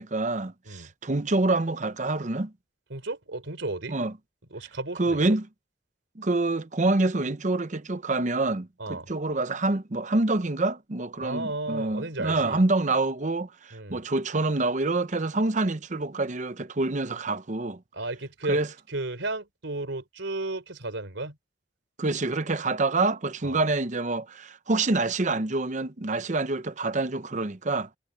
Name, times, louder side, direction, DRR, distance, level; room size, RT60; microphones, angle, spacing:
voice 1, 0.0-2.5 3.9-4.1 5.0-5.5 6.2-17.8 18.5-18.7 22.0-27.9, right 2 dB, 40° right, 0.8 m, -26 dB
voice 2, 2.9-4.0 4.5-5.2 8.8-9.1 11.2-12.6 13.7-14.0 17.9-18.6 18.9-21.4 23.4-23.6, right 2 dB, 90° right, 3.7 m, -33 dB
head